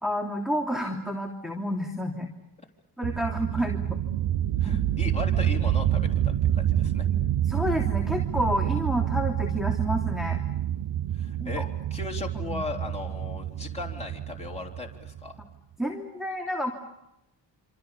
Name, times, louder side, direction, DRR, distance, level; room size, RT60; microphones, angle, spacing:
voice 1, 0.0-2.3 3.0-4.0 4.6-4.9 7.4-10.4 11.4-11.7 12.5-12.7 15.4-15.5 15.8-16.7, equal, ahead, 3 dB, 3.1 m, -30 dB
sound 1, 3.0-15.4, right 11 dB, 80° right, 1.0 m, -27 dB
voice 2, 4.6-7.1 11.1-11.6 11.9-15.4, left 4 dB, 15° left, 0 dB, 3.9 m, -37 dB
27.0 x 26.5 x 7.0 m, 0.89 s
cardioid pair, 80°, 42 cm